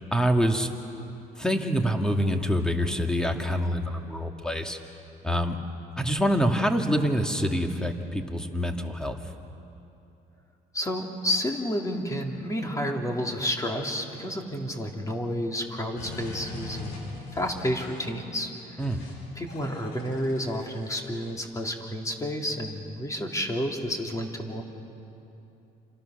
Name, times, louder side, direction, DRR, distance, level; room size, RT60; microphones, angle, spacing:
voice 1, 0.1-0.7 1.4-4.8 5.2-5.6 6.0-9.3 18.8-19.0, equal, 5° left, 4 dB, 2.1 m, -26 dB
voice 2, 10.7-18.9 19.3-24.6, equal, 20° left, 2 dB, 3.3 m, -30 dB
sound 1, 16.0-18.2 18.8-19.1 19.5-21.3, left 3 dB, 90° left, 6.6 m, -41 dB
29.5 x 26.5 x 6.7 m, 2.8 s
cardioid pair, 110°, 17 cm